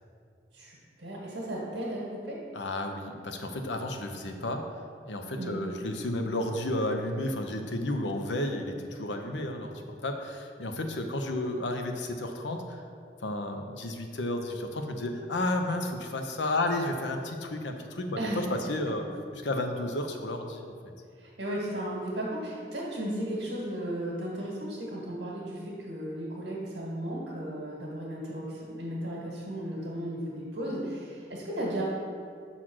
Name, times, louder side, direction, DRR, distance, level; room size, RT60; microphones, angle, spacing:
voice 1, 0.5-2.4 5.3-5.6 18.2-18.4 21.2-31.9, right 1 dB, 80° right, -5 dB, 1.6 m, -35 dB
voice 2, 2.5-4.7 5.1-12.8 13.2-20.7, left 1 dB, 85° left, 5 dB, 0.7 m, -32 dB
6.0 x 4.0 x 6.2 m, 2.2 s
head